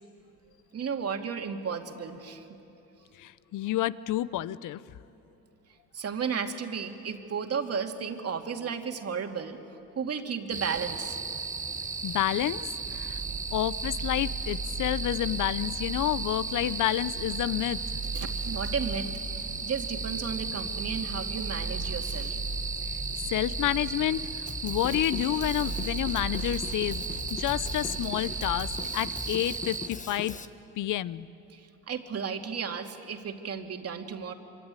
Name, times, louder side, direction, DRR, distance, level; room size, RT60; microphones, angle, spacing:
voice 1, 0.7-2.5 5.9-9.6 10.0-11.2 18.1-19.1 19.6-22.4 31.5-34.3, right 6 dB, 40° right, 4 dB, 2.5 m, -33 dB
voice 2, 3.2-4.8 12.0-13.2 13.5-17.8 23.3-27.0 27.3-30.4 30.8-31.3, left 13 dB, 55° left, 17 dB, 0.9 m, -29 dB
sound 1, 10.5-29.9, right 4 dB, 20° right, 1.3 m, -35 dB
sound 2, 12.8-28.8, right 2 dB, 60° right, 2.6 m, -38 dB
Drum kit, 24.5-30.5, left 4 dB, 20° left, 1.4 m, -41 dB
25.5 x 25.0 x 9.1 m, 2.9 s
supercardioid pair, 85°, 36 cm